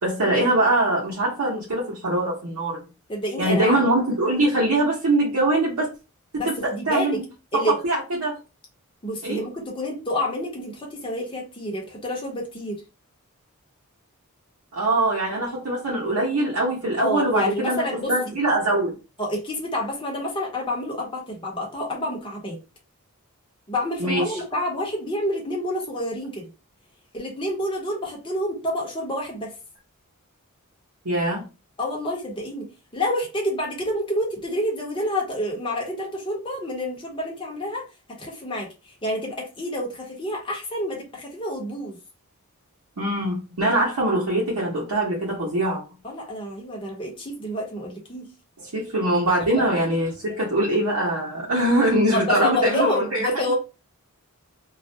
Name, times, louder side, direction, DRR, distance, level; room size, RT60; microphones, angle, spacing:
voice 1, 0.0-2.8 3.4-5.9 6.3-7.2 7.5-8.4 9.2-9.4 14.7-18.9 24.0-24.4 31.0-31.5 43.0-45.8 48.6-53.5, right 1 dB, 85° right, 0.8 m, -23 dB
voice 2, 3.1-3.8 6.3-7.2 7.5-7.7 9.0-12.8 17.0-18.1 19.2-22.6 23.7-26.5 27.1-29.5 31.8-42.0 46.0-48.3 52.1-53.5, left 1 dB, 20° left, 0.8 m, -28 dB
2.4 x 2.1 x 2.6 m
head